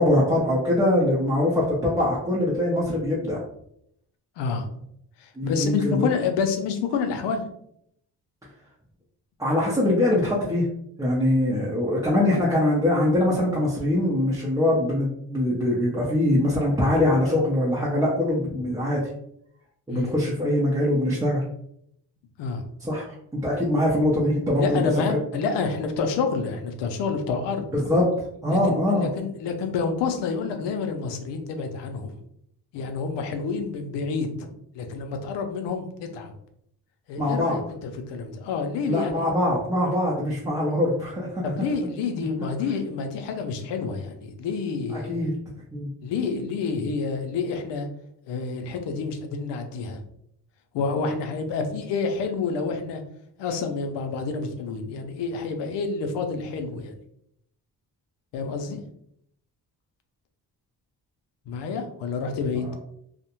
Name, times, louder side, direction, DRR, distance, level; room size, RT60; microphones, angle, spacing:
voice 1, 0.0-3.4 5.4-6.1 9.4-10.7 11.0-19.1 19.9-21.4 22.8-23.0 23.3-24.8 25.1-25.2 27.7-28.0 28.4-29.1 37.2-37.6 38.9-41.5 44.9-45.3 45.7-45.9 62.7-62.8, left 1 dB, 10° right, -6 dB, 0.5 m, -23 dB
voice 2, 4.4-4.7 5.2-7.4 19.9-20.1 22.4-22.6 24.6-27.7 28.5-32.2 32.7-34.5 34.7-36.3 37.1-39.2 41.4-45.3 46.0-47.9 48.2-50.0 50.7-53.0 53.4-56.9 58.3-58.8 61.5-62.8, left 5 dB, 90° left, 6 dB, 0.6 m, -28 dB
2.4 x 2.1 x 2.9 m, 0.73 s
cardioid pair, 95°, 41 cm